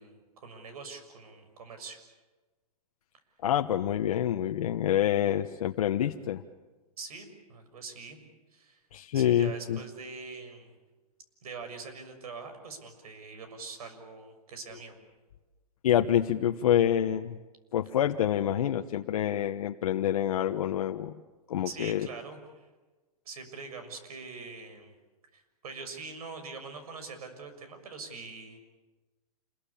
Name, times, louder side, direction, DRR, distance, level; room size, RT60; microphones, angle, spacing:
voice 1, 0.0-2.0 7.0-8.2 8.5-8.8 9.1-10.7 11.4-14.9 21.6-22.7 23.2-24.9 25.3-28.6, right 4 dB, 70° right, 8 dB, 6.5 m, -43 dB
voice 2, 3.4-6.4 8.9-9.8 15.8-17.4 17.7-21.1 21.5-22.1, left 10 dB, 60° left, 5 dB, 1.1 m, -27 dB
28.0 x 22.0 x 8.7 m, 1.2 s
hypercardioid pair, 170°, 20 cm